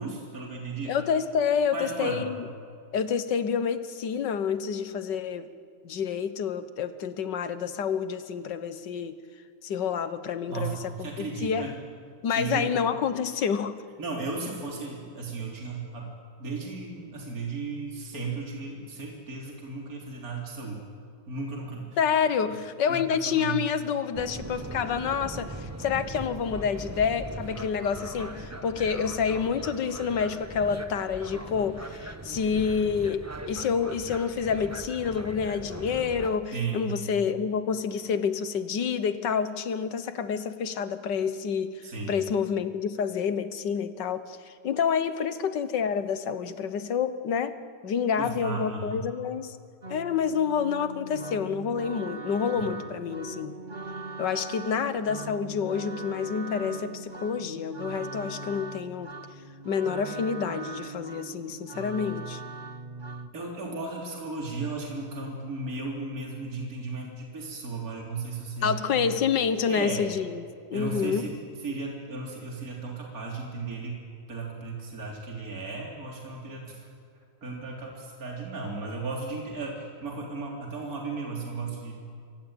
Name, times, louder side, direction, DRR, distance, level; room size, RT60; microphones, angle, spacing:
voice 1, 0.0-1.0 1.7-2.3 10.5-11.7 12.3-12.7 14.0-16.1 16.4-20.8 21.3-22.0 22.9-23.6 36.5-36.9 41.8-42.2 48.2-49.0 52.5-52.6 63.3-69.1 69.7-70.1 70.7-71.3 71.6-74.0 74.3-76.8 77.4-82.0, right 3 dB, 45° right, -1 dB, 4.1 m, -35 dB
voice 2, 0.8-2.5 2.9-5.5 5.8-9.2 9.6-11.7 12.2-13.7 22.0-47.5 47.8-49.6 49.9-53.5 54.2-59.1 59.6-62.4 68.6-71.3, left 6 dB, 65° left, 11 dB, 1.7 m, -28 dB
sound 1, 24.1-36.4, right 1 dB, 10° right, 0.9 m, -40 dB
sound 2, 49.8-63.3, right 3 dB, 30° right, 1.2 m, -40 dB
26.5 x 23.0 x 9.0 m, 2.3 s
omnidirectional pair, 2.1 m